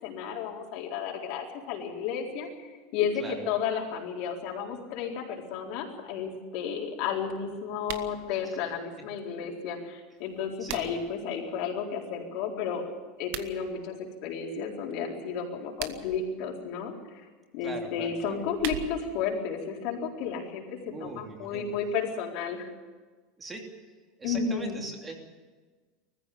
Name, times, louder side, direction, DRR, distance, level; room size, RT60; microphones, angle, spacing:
voice 1, 0.0-12.8 13.2-14.0 14.2-17.3 17.5-20.6 21.0-22.7 24.2-24.8, left 6 dB, 55° left, -1 dB, 4.2 m, -32 dB
sound 1, 7.8-8.1 10.2-11.1 13.2-13.5 15.6-16.2 18.2-19.2, right 10 dB, 70° right, 1.4 m, -39 dB
voice 2, 17.6-18.4 20.9-21.8 23.4-23.7 24.2-25.2, right 2 dB, 15° right, 2 dB, 3.0 m, -40 dB
20.0 x 15.0 x 8.6 m, 1.3 s
supercardioid pair, 160°, 0 cm